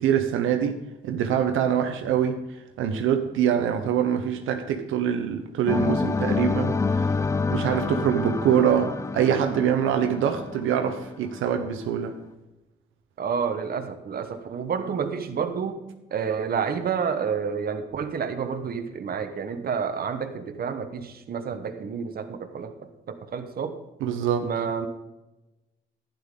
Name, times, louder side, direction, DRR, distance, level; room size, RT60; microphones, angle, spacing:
voice 1, 0.0-2.4 2.8-7.1 7.5-12.1 24.0-24.5, right 9 dB, 85° right, 6 dB, 0.9 m, -24 dB
sound 1, 5.7-11.6, left 4 dB, 15° left, 0.3 m, -28 dB
voice 2, 13.2-15.8 16.1-23.8 24.4-24.9, right 6 dB, 50° right, 7 dB, 1.2 m, -29 dB
11.5 x 10.5 x 3.8 m, 1.0 s
cardioid pair, 90°, 20 cm